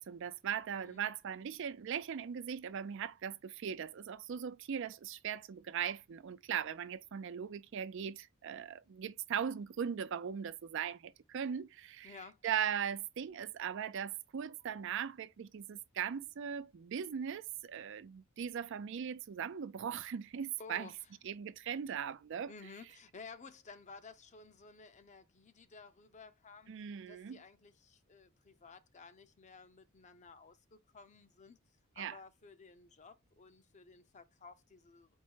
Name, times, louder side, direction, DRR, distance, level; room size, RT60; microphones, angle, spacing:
voice 1, 0.0-12.2 12.4-20.9 21.2-22.5 26.7-27.4 32.0-32.2, right 8 dB, 60° right, 0.4 m, -39 dB
voice 2, 0.8-1.1 12.0-12.4 20.6-21.1 22.5-26.7 27.1-31.6 32.0-35.1, left 4 dB, 35° left, 0.6 m, -54 dB
4.6 x 2.1 x 4.6 m
head